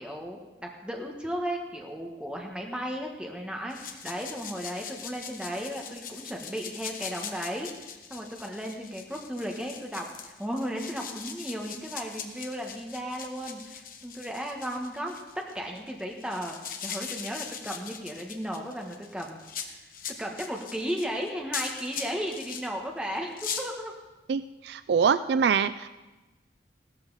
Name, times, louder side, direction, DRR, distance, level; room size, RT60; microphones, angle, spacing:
voice 1, 0.0-16.6 16.8-23.9, equal, 5° right, 0 dB, 1.3 m, -35 dB
sound 1, 3.7-22.7 23.2-23.6, left 7 dB, 50° left, 1.1 m, -40 dB
voice 2, 24.3-25.9, right 6 dB, 70° right, 13 dB, 0.3 m, -24 dB
16.5 x 13.0 x 4.0 m, 1.1 s
head